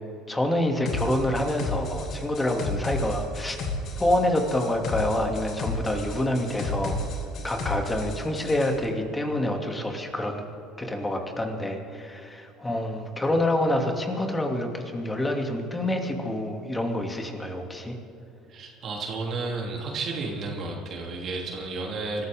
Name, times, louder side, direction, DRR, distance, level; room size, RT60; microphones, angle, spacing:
voice 1, 0.3-3.6 4.0-7.0 7.4-10.4 10.8-17.9, left 1 dB, 15° left, 3 dB, 2.7 m, -27 dB
sound 1, 0.9-8.7, left 2 dB, 55° left, 2.8 m, -32 dB
voice 2, 18.5-22.3, right 3 dB, 50° right, -1 dB, 3.2 m, -32 dB
25.0 x 14.0 x 3.8 m, 2.9 s
hypercardioid pair, 75°, 0 cm